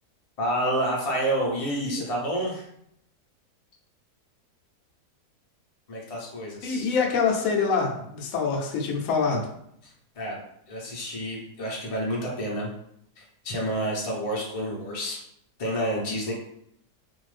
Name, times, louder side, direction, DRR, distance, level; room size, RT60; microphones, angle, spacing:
voice 1, 0.4-2.6 5.9-6.9 10.1-10.4 10.7-12.7 13.2-15.2 15.6-16.3, equal, 35° left, -4 dB, 0.6 m, -29 dB
voice 2, 6.6-9.5, left 5 dB, 65° left, 0 dB, 0.9 m, -25 dB
2.6 x 2.5 x 3.2 m, 0.73 s
omnidirectional pair, 1.7 m